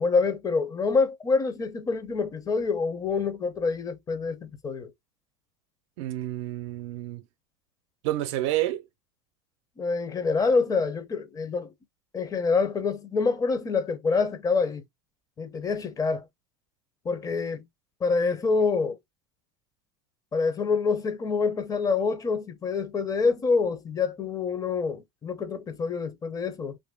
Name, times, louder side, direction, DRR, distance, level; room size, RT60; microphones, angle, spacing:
voice 1, 0.0-4.9 9.8-11.7 12.1-14.8 15.4-16.2 17.0-17.6 18.0-19.0 20.3-26.8, left 4 dB, 25° left, 0.7 m, -26 dB
voice 2, 6.0-7.2 8.0-8.8, right 14 dB, 70° right, 0.6 m, -29 dB
3.0 x 2.6 x 3.5 m
supercardioid pair, 100°, 16 cm